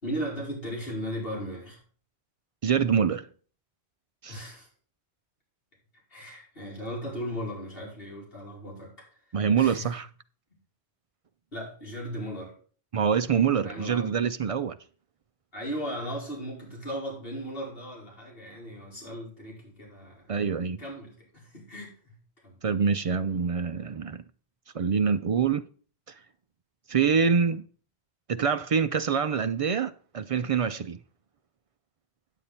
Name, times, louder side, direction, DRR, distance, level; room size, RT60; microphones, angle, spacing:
voice 1, 0.0-1.8 4.3-4.7 6.1-9.1 9.6-9.9 11.5-12.5 13.6-14.1 15.5-20.2 20.8-22.1 22.4-22.6, equal, 55° left, 4.5 m, -37 dB
voice 2, 2.6-3.3 4.2-4.4 9.3-10.1 12.9-14.8 20.3-20.8 22.6-24.2 24.7-25.6 26.9-27.6 28.3-31.0, right 6 dB, 65° right, 0.3 m, -25 dB
9.0 x 8.2 x 4.3 m
omnidirectional pair, 1.1 m